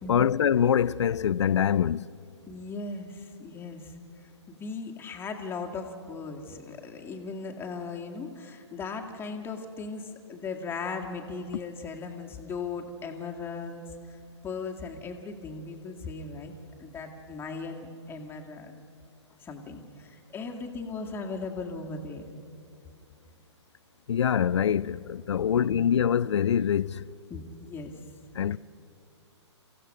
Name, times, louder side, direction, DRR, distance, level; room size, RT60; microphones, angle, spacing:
voice 1, 0.1-2.1 24.1-27.0 28.4-28.6, left 8 dB, 75° left, 0.5 m, -24 dB
voice 2, 2.5-3.9 4.5-16.5 16.8-18.7 19.4-22.3 25.4-25.8 27.3-28.0, left 4 dB, 15° left, 2.0 m, -38 dB
27.5 x 15.5 x 6.5 m
hypercardioid pair, 125°, 15 cm